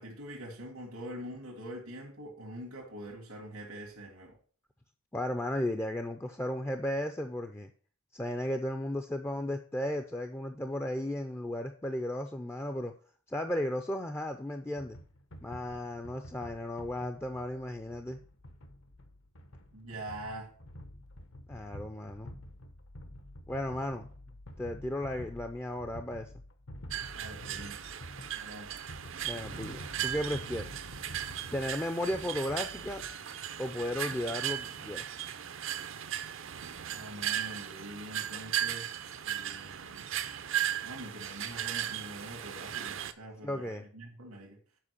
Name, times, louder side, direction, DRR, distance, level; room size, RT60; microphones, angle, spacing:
voice 1, 0.0-4.4 19.7-20.5 27.1-27.8 28.3-28.7 36.9-40.1 40.8-44.6, right 1 dB, 85° right, 0 dB, 1.8 m, -44 dB
voice 2, 5.1-7.7 8.1-12.9 13.3-15.0 15.4-18.2 21.5-22.3 23.5-24.1 24.6-26.3 29.2-30.9 31.5-33.0 33.6-35.3 43.4-43.8, left 1 dB, 10° left, 5 dB, 0.4 m, -35 dB
sound 1, 14.8-33.1, equal, 65° left, 1.0 m, -49 dB
sound 2, 26.9-43.1, right 11 dB, 65° right, 0.6 m, -37 dB
7.5 x 5.1 x 6.5 m, 0.43 s
head